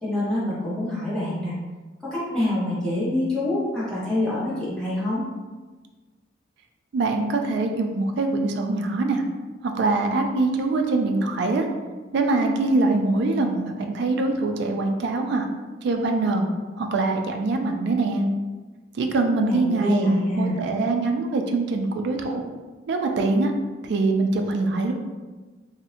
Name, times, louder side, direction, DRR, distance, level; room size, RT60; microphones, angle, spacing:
voice 1, 0.0-1.5 2.0-5.3 19.4-20.5, left 1 dB, 5° left, -11 dB, 1.0 m, -26 dB
voice 2, 6.9-9.2 9.6-11.7 12.1-15.5 15.8-16.5 16.8-18.2 18.9-22.4 22.9-23.5 23.8-24.9, right 3 dB, 60° right, 4 dB, 0.3 m, -23 dB
2.6 x 2.0 x 2.7 m, 1.3 s
head